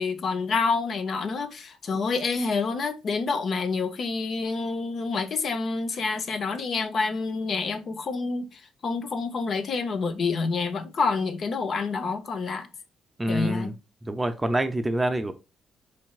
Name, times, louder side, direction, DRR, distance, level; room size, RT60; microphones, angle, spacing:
voice 1, 0.0-12.7 13.3-13.7, left 4 dB, 55° left, 0.7 m, -28 dB
voice 2, 13.2-13.7 14.0-15.3, right 1 dB, 15° right, 0.5 m, -26 dB
4.4 x 3.3 x 2.3 m
cardioid pair, 90°, 0 cm